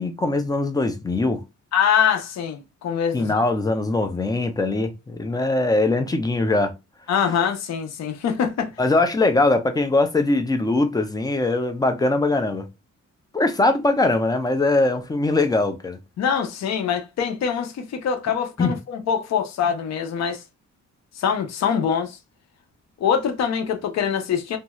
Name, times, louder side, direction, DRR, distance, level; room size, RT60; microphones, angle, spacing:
voice 1, 0.0-1.4 3.1-6.7 8.8-12.7 13.3-16.0 18.6-18.7, left 2 dB, 15° left, 0.4 m, -21 dB
voice 2, 1.7-3.4 7.1-8.7 16.2-20.4 21.2-22.2 23.0-24.6, left 7 dB, 60° left, 0.6 m, -24 dB
2.7 x 2.3 x 2.9 m
wide cardioid pair, 160°, 30 cm